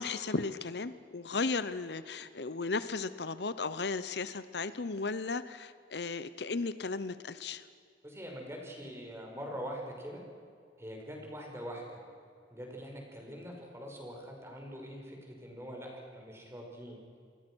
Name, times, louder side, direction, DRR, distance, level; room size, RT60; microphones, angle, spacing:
voice 1, 0.0-7.6, left 4 dB, 70° left, 14 dB, 0.9 m, -35 dB
voice 2, 8.0-10.2 10.8-12.0 12.5-17.0, equal, 15° right, 0 dB, 5.6 m, -43 dB
28.5 x 21.0 x 6.3 m, 2.3 s
head